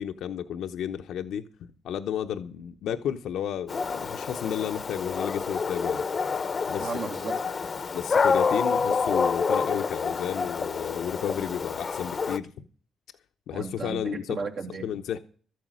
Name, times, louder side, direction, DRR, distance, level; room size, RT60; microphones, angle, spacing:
voice 1, 0.0-1.4 1.8-6.0 6.7-6.9 7.9-12.5 13.5-14.4 14.8-15.2, left 9 dB, 80° left, 0.8 m, -32 dB
Dog, 3.7-12.4, left 5 dB, 40° left, 0.7 m, -28 dB
voice 2, 6.8-7.6 13.5-14.9, right 4 dB, 60° right, 2.2 m, -35 dB
13.0 x 9.2 x 6.3 m
cardioid pair, 90°, 0 cm